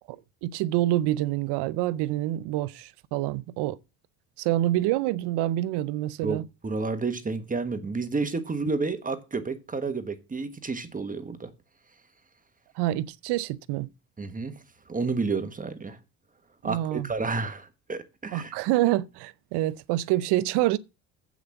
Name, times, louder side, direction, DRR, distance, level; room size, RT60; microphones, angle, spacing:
voice 1, 0.1-3.8 4.4-6.4 12.8-13.9 16.6-17.1 18.3-20.8, right 15 dB, 75° right, 0.7 m, -27 dB
voice 2, 6.2-11.5 14.2-14.5 14.9-16.0 16.6-18.5, right 4 dB, 20° right, 1.3 m, -30 dB
8.0 x 6.2 x 7.0 m
supercardioid pair, 100°, 41 cm